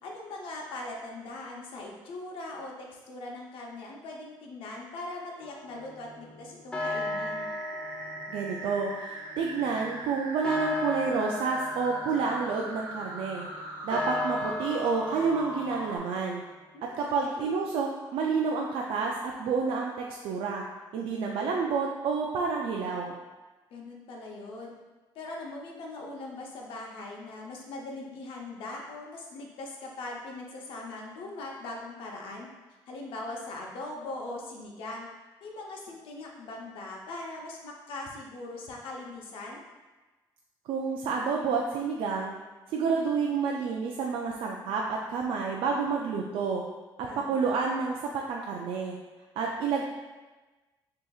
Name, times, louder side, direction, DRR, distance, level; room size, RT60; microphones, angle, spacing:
voice 1, 0.0-7.5 16.7-17.5 23.7-24.7 25.1-32.5 32.9-35.1 35.4-39.6 47.0-47.5, left 2 dB, 75° left, -1 dB, 0.8 m, -41 dB
sound 1, 5.4-16.6, left 1 dB, 15° left, 0.5 m, -37 dB
sound 2, 6.8-16.0, right 1 dB, 50° right, 1.1 m, -41 dB
voice 2, 8.3-13.5 13.8-16.4 17.0-20.6 20.9-23.2 40.7-42.4 42.7-46.6 47.0-49.0 49.4-49.8, right 5 dB, 80° right, -1 dB, 0.4 m, -29 dB
6.2 x 2.8 x 2.4 m, 1.2 s
cardioid pair, 125°, 9 cm